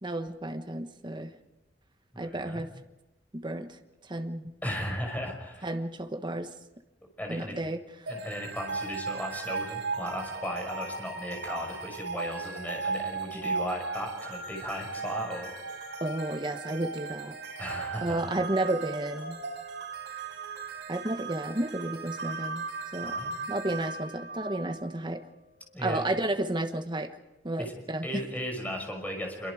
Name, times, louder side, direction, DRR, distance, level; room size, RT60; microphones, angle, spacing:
voice 1, 0.0-1.3 2.2-2.8 3.3-3.8 4.1-4.6 5.6-6.5 7.3-8.1 16.0-17.4 18.0-19.4 20.9-22.7 22.9-23.2 23.5-25.2 25.8-27.1 27.4-28.2, right 1 dB, 25° right, 6 dB, 1.2 m, -32 dB
voice 2, 2.1-2.6 4.6-5.7 7.2-7.6 8.1-15.5 17.6-18.3 23.0-23.4 25.7-26.0 27.6-27.7 28.0-29.5, equal, 10° left, 2 dB, 5.7 m, -36 dB
sound 1, 8.1-25.2, right 4 dB, 80° right, 6.3 m, -37 dB
26.5 x 23.5 x 5.0 m, 1.0 s
head